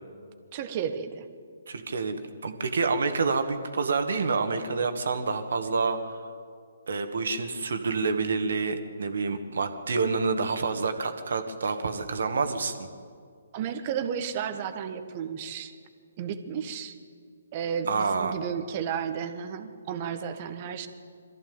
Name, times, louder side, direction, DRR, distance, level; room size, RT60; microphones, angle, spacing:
voice 1, 0.5-1.3 13.5-15.7 16.2-16.9 17.5-20.9, right 7 dB, 35° right, 9 dB, 1.5 m, -33 dB
voice 2, 1.7-6.2 6.9-12.9 17.9-18.4, right 4 dB, 60° right, 8 dB, 2.0 m, -28 dB
22.5 x 14.5 x 8.9 m, 2.2 s
figure-of-eight pair, 135°, 0 cm